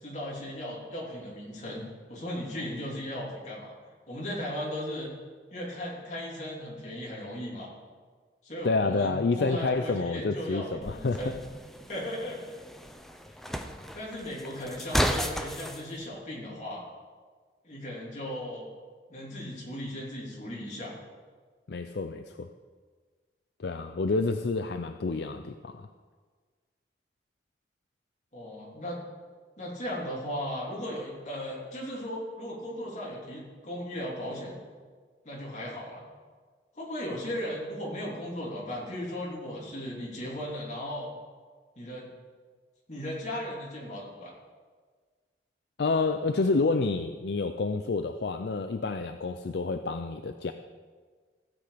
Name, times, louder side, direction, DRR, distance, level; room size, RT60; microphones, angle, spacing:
voice 1, 0.0-3.7 4.1-5.1 5.5-7.7 8.4-11.4 11.9-12.4 13.9-16.8 17.6-18.7 19.1-21.0 28.3-29.0 29.6-34.6 35.2-36.0 36.7-41.1 41.8-42.1 42.9-44.3, equal, 40° left, -4 dB, 3.2 m, -36 dB
voice 2, 8.6-11.2 21.7-22.5 23.6-25.9 45.8-50.5, left 3 dB, 65° left, 8 dB, 0.5 m, -29 dB
sound 1, 10.8-15.8, equal, ahead, 0.6 m, -33 dB
16.0 x 7.9 x 5.0 m, 1.5 s
head